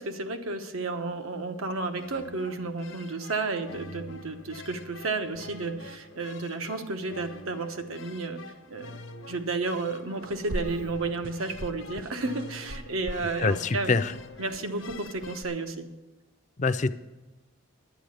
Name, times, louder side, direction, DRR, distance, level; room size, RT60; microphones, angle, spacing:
voice 1, 0.0-8.4 8.7-9.0 9.3-13.9 14.4-15.9, right 3 dB, 90° right, 6 dB, 1.1 m, -32 dB
sound 1, 1.9-15.7, left 3 dB, 70° left, 1.0 m, -47 dB
sound 2, 10.2-15.4, right 1 dB, 45° right, 0.6 m, -41 dB
voice 2, 13.4-14.1 16.6-16.9, left 3 dB, 35° left, 12 dB, 0.4 m, -25 dB
10.5 x 9.4 x 6.5 m, 1.1 s
head